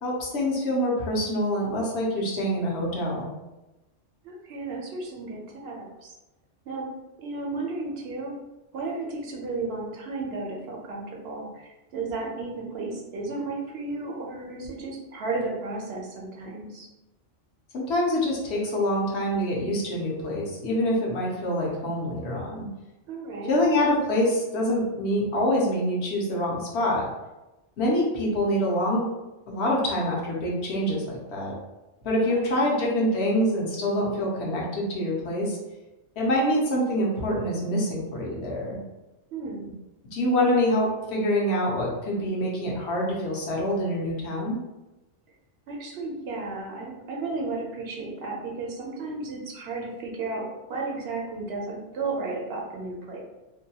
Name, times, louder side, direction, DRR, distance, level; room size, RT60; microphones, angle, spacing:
voice 1, 0.0-3.3 17.7-22.7 23.5-27.1 27.8-29.0 29.5-31.5 32.0-35.6 36.2-38.8 40.1-44.6, equal, 70° left, -3 dB, 1.0 m, -25 dB
voice 2, 4.2-6.1 6.7-6.9 7.2-8.4 8.7-16.9 23.1-23.6 32.3-32.8 39.3-39.7 45.7-50.4 50.7-53.2, right 3 dB, 65° right, -1 dB, 0.8 m, -33 dB
2.7 x 2.2 x 2.7 m, 1.0 s
omnidirectional pair, 1.2 m